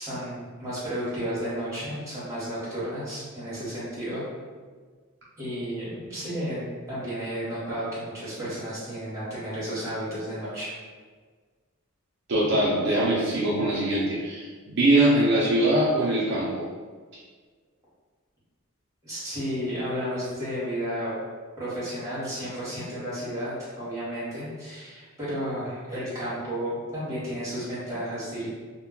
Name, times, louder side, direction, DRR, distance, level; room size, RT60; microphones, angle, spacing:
voice 1, 0.0-4.2 5.4-10.7 19.0-21.1 21.6-28.5, equal, 15° right, -10 dB, 1.1 m, -32 dB
voice 2, 12.3-16.6, right 1 dB, 50° right, -7 dB, 0.5 m, -22 dB
2.2 x 2.2 x 3.7 m, 1.5 s
head